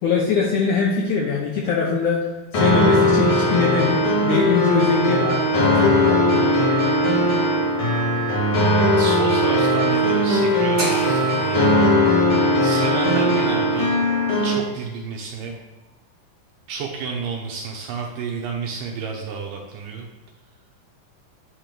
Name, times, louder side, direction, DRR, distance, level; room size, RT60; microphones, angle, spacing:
voice 1, 0.0-2.2 2.5-6.6, left 5 dB, 75° left, -2 dB, 1.8 m, -22 dB
sound 1, 2.5-14.5, equal, 50° left, 1.8 m, -19 dB
voice 2, 9.0-11.8 12.6-14.0 14.4-15.5 16.7-20.1, right 5 dB, 80° right, 0 dB, 2.0 m, -30 dB
sound 2, 10.8-14.9, right 1 dB, 45° right, 1.4 m, -34 dB
8.9 x 3.0 x 5.0 m, 1.1 s
omnidirectional pair, 4.3 m